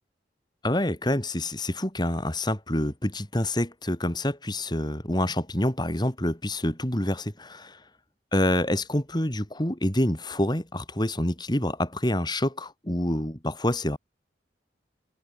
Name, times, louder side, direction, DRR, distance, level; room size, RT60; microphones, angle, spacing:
voice 1, 0.6-7.8 8.3-14.0, left 1 dB, 25° left, 3.9 m, -27 dB
head